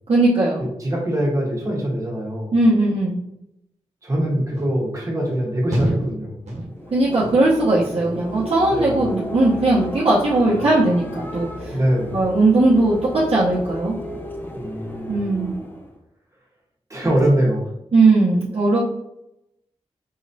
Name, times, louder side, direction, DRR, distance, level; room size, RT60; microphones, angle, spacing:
voice 1, 0.1-0.7 2.5-3.2 6.9-11.8 12.1-13.9 15.1-15.5 17.9-18.8, right 2 dB, 60° right, -7 dB, 0.9 m, -18 dB
voice 2, 0.8-2.5 4.0-6.4 8.7-9.0 11.7-12.2 14.6-15.3 16.9-17.6, right 1 dB, 30° right, -3 dB, 1.4 m, -23 dB
sound 1, 4.5-4.7 5.3-5.4 5.7-6.2 6.5-6.9 7.2-7.6 8.0-8.3 8.7-9.1 9.5-9.6, right 1 dB, 85° right, 1.2 m, -28 dB
sound 2, 6.6-16.0, equal, 15° left, 0.7 m, -33 dB
4.8 x 3.0 x 2.7 m, 0.83 s
wide cardioid pair, 80°, 11 cm